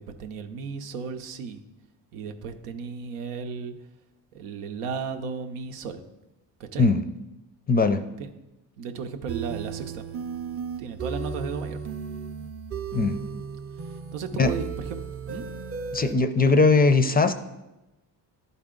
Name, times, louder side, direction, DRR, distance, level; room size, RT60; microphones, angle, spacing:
voice 1, 0.0-1.6 2.1-3.7 4.3-6.0 6.6-6.9 8.2-8.3 8.8-10.0 10.8-11.8 14.1-15.5, right 5 dB, 90° right, 6 dB, 0.7 m, -35 dB
voice 2, 7.7-8.1 12.9-13.2 14.4-14.5 15.9-17.3, left 3 dB, 20° left, 10 dB, 0.4 m, -20 dB
sound 1, 9.3-16.1, right 6 dB, 30° right, 0.6 m, -35 dB
11.0 x 4.0 x 3.7 m, 1.0 s
supercardioid pair, 70°, 44 cm